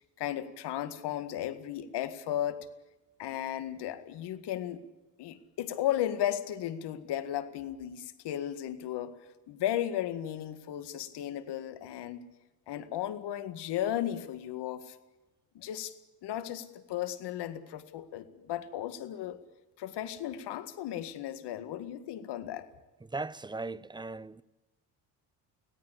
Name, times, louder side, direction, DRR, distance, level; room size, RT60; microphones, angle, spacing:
voice 1, 0.2-2.7 3.2-4.8 5.2-12.2 12.7-15.0 15.5-16.0 16.2-19.4 19.8-22.7, left 11 dB, 70° left, 2.0 m, -35 dB
voice 2, 23.0-24.4, right 3 dB, 10° right, 0.9 m, -38 dB
25.0 x 17.5 x 8.5 m
supercardioid pair, 70°, 43 cm